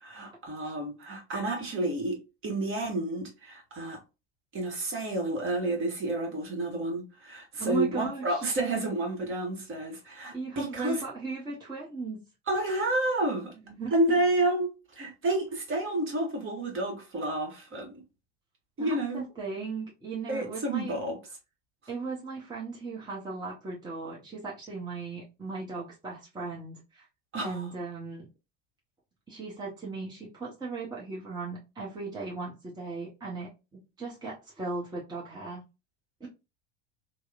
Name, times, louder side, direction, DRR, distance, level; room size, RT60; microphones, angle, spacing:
voice 1, 0.0-4.0 4.5-11.0 12.5-13.5 13.9-17.9 18.8-19.2 20.3-21.2 27.3-27.6, right 1 dB, 35° right, 1.1 m, -30 dB
voice 2, 7.6-8.4 10.3-12.2 13.6-13.9 18.8-20.9 21.9-27.1 27.4-28.3 29.3-35.6 36.2-36.3, right 3 dB, 10° right, 0.8 m, -37 dB
2.8 x 2.0 x 2.3 m
hypercardioid pair, 80°, 38 cm